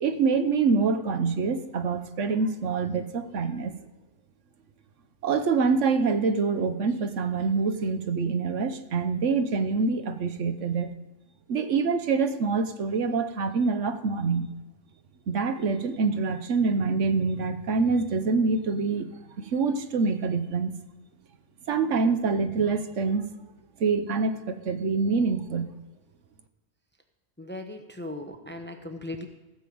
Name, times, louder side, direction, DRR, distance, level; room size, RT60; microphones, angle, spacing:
voice 1, 0.0-3.7 5.2-10.9 11.5-14.5 15.3-19.1 19.4-20.7 21.7-23.3 23.8-25.7, right 4 dB, 70° right, 9 dB, 1.2 m, -25 dB
voice 2, 27.4-29.3, left 1 dB, 10° left, 6 dB, 0.7 m, -38 dB
15.5 x 5.5 x 7.7 m, 1.2 s
omnidirectional pair, 1.3 m